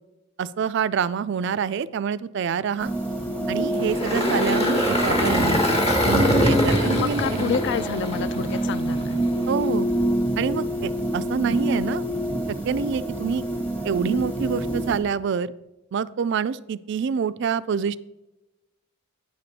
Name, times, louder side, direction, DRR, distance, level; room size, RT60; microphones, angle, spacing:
voice 1, 0.4-2.9 3.5-7.5 9.5-9.9 10.4-12.1 12.5-13.4 13.8-15.5 15.9-18.0, right 6 dB, 55° right, 16 dB, 0.3 m, -26 dB
sound 1, 2.8-15.0, right 1 dB, 5° left, 1.1 m, -27 dB
Engine, 3.7-9.0, equal, 25° left, 1.3 m, -23 dB
voice 2, 6.5-9.2, left 6 dB, 55° left, 17 dB, 0.3 m, -29 dB
9.0 x 6.8 x 4.1 m, 0.99 s
head